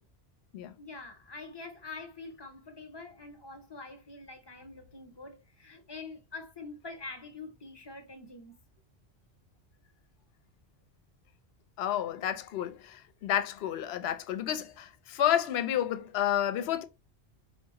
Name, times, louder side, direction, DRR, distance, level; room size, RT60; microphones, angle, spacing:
voice 1, 0.8-8.5, left 3 dB, 25° left, 0.8 m, -45 dB
voice 2, 11.8-16.8, left 11 dB, 70° left, 0.8 m, -30 dB
4.6 x 2.6 x 2.9 m
omnidirectional pair, 1.1 m